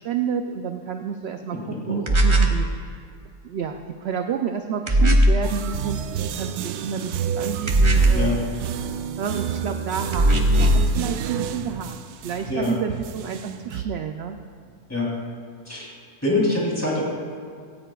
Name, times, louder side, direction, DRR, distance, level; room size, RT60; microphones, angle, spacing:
voice 1, 0.0-2.9 3.4-8.3 9.2-10.3 10.6-12.0 12.2-14.4 16.3-16.6, right 7 dB, 65° right, 6 dB, 0.6 m, -30 dB
voice 2, 1.5-2.0 8.1-8.4 12.5-12.7 14.9-15.1 15.7-15.9 16.2-17.0, left 2 dB, 10° left, -5 dB, 3.2 m, -24 dB
sound 1, 2.1-2.6 4.9-5.5 7.7-8.3 10.1-10.9, right 1 dB, 25° right, 0.7 m, -17 dB
sound 2, 5.4-13.9, right 8 dB, 90° right, 1.1 m, -30 dB
16.5 x 15.0 x 2.3 m, 2.3 s
omnidirectional pair, 1.6 m